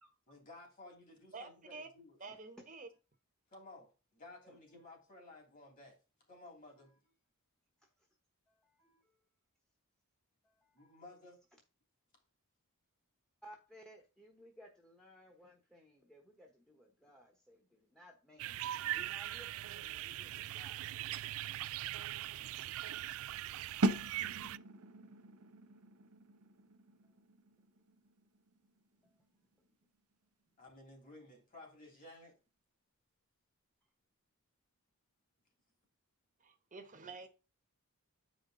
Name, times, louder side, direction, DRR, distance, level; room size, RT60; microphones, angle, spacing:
voice 1, 0.3-2.2 3.5-3.9 4.2-5.9 6.3-6.9 10.8-11.4 30.6-32.3, left 2 dB, 40° left, 3.0 m, -55 dB
voice 2, 1.3-1.9 2.2-2.9 36.4-37.3, right 3 dB, 35° right, 1.0 m, -49 dB
voice 3, 8.5-9.0 10.4-11.0 13.4-21.0 27.0-27.1 29.0-29.2, equal, 5° left, 1.1 m, -59 dB
sound 1, 18.4-24.6, right 14 dB, 65° right, 0.3 m, -41 dB
sound 2, 23.8-29.5, right 2 dB, 85° right, 0.9 m, -40 dB
8.5 x 5.1 x 3.8 m
head